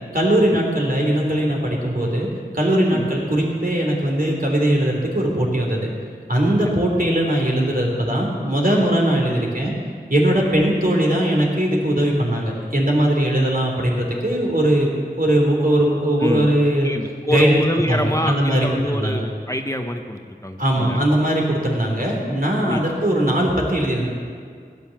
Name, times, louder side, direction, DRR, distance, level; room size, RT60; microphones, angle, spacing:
voice 1, 0.1-2.3 2.5-5.9 6.3-9.7 10.1-14.9 15.2-16.9 17.3-17.6 17.9-18.7 18.9-19.3 20.6-24.1, right 1 dB, 60° right, -1 dB, 3.5 m, -20 dB
voice 2, 16.2-16.6 16.8-21.0 22.7-22.9, equal, 20° left, 5 dB, 0.9 m, -25 dB
16.5 x 9.5 x 7.2 m, 2.1 s
wide cardioid pair, 40°, 17 cm